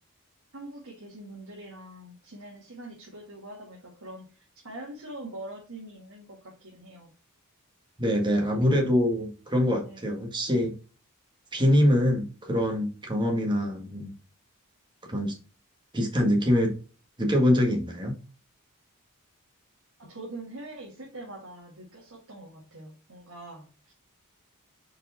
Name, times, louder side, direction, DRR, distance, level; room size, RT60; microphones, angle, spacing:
voice 1, 0.5-7.1 8.5-9.0 9.7-10.1 20.0-23.9, right 1 dB, 70° right, 1.9 m, -44 dB
voice 2, 8.0-10.7 11.5-14.1 15.1-15.4 15.9-16.8 17.2-18.2, equal, 20° right, 1.6 m, -24 dB
5.2 x 4.6 x 4.1 m
head